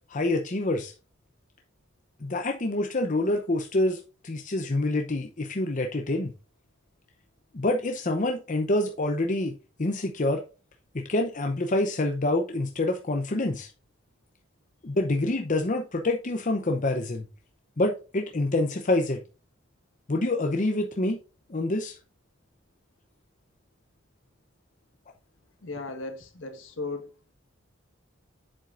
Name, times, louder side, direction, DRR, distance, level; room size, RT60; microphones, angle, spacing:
voice 1, 0.1-0.9 2.2-6.3 7.5-10.4 10.9-13.7 14.8-17.3 17.8-19.2 20.1-21.2 21.5-22.0, left 2 dB, 35° left, 0.7 m, -27 dB
voice 2, 25.6-27.1, left 3 dB, 65° left, 1.5 m, -36 dB
7.6 x 7.4 x 2.5 m
head